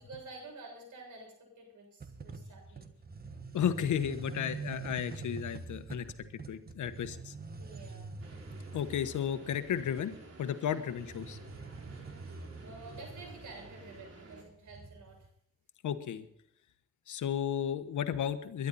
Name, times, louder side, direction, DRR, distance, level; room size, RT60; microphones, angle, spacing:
voice 1, 0.0-2.9 7.6-8.1 12.6-15.3, right 3 dB, 85° right, 2 dB, 7.1 m, -50 dB
sound 1, 2.0-15.3, right 4 dB, 30° right, 1.4 m, -46 dB
voice 2, 3.5-6.1 6.5-7.3 8.7-10.1 10.4-11.4 15.8-16.2 17.1-18.7, left 9 dB, 85° left, 10 dB, 1.3 m, -33 dB
sound 2, 8.2-14.4, right 2 dB, 55° right, 3.7 m, -53 dB
22.0 x 11.5 x 4.2 m, 0.69 s
cardioid pair, 90°, 29 cm